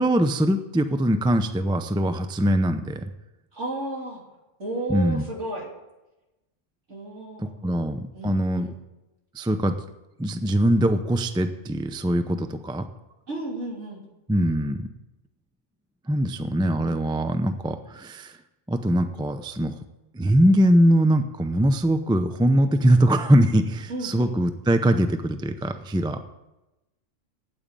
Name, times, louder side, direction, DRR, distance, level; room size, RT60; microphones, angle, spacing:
voice 1, 0.0-3.1 4.9-5.2 7.4-8.7 9.3-9.7 10.2-12.8 14.3-14.9 16.1-18.4 18.7-19.7 20.1-26.2, right 1 dB, 5° right, 9 dB, 0.4 m, -22 dB
voice 2, 3.5-4.2 4.6-5.7 6.9-7.7 8.1-8.8 13.3-14.0 22.7-23.1 23.9-24.3, right 2 dB, 65° right, -2 dB, 3.4 m, -33 dB
9.1 x 8.7 x 8.8 m, 0.98 s
omnidirectional pair, 1.3 m